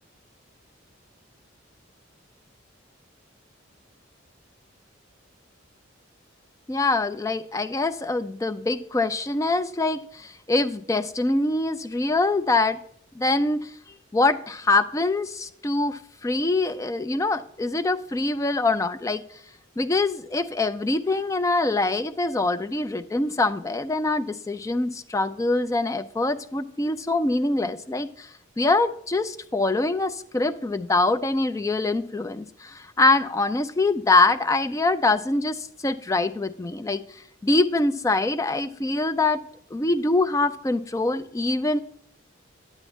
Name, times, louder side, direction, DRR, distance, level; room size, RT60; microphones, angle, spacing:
voice 1, 6.7-12.8 13.1-13.7 14.1-19.2 19.8-37.0 37.4-39.4 39.7-41.8, left 2 dB, 15° left, 11 dB, 0.3 m, -24 dB
9.2 x 8.1 x 3.5 m, 0.66 s
head